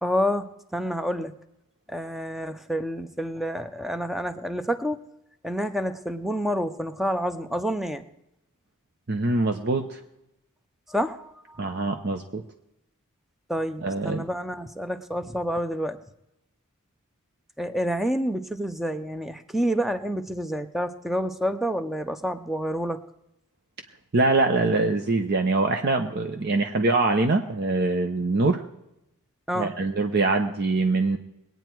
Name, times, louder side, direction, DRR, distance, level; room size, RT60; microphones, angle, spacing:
voice 1, 0.0-0.5 0.7-1.3 1.9-5.0 5.4-8.1 10.9-11.6 13.5-16.0 17.6-23.0 29.5-29.7, equal, ahead, 9 dB, 0.6 m, -28 dB
voice 2, 9.1-10.0 11.6-12.4 13.8-14.3 24.1-28.6 29.5-31.2, right 3 dB, 50° right, 6 dB, 0.8 m, -23 dB
21.5 x 9.2 x 4.6 m, 0.87 s
head